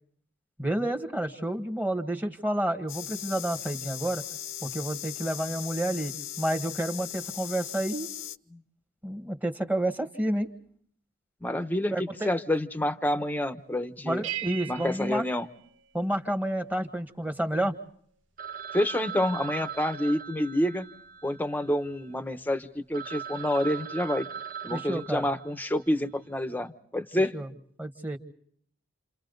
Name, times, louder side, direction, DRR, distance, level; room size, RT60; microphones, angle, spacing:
voice 1, 0.6-4.2 4.6-8.1 9.0-10.5 11.9-12.3 14.1-15.3 15.9-17.8 24.7-25.3 27.1-27.5 27.8-28.2, right 1 dB, 5° right, 6 dB, 1.7 m, -30 dB
sound 1, 2.9-8.4, left 12 dB, 60° left, 0.9 m, -38 dB
voice 2, 11.4-11.9 12.2-14.3 14.7-15.5 18.7-20.9 21.2-24.3 24.6-27.3, left 1 dB, 10° left, 9 dB, 1.1 m, -28 dB
sound 2, 14.2-16.5, right 13 dB, 60° right, 2.1 m, -39 dB
Telephone, 18.4-22.2 22.6-22.7 22.9-25.8, right 7 dB, 40° right, 1.1 m, -40 dB
29.5 x 28.5 x 4.0 m, 0.65 s
head